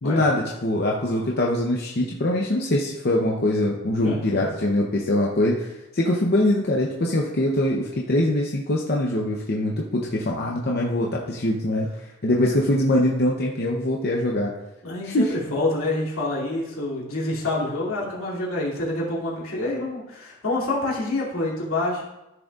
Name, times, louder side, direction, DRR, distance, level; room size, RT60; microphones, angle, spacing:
voice 1, 0.0-11.9 12.2-14.5 15.0-15.3, left 1 dB, 45° left, -1 dB, 0.7 m, -23 dB
voice 2, 4.0-4.5 10.3-10.5 14.8-22.0, left 2 dB, 75° left, -5 dB, 2.6 m, -27 dB
14.0 x 6.3 x 2.4 m, 0.97 s
head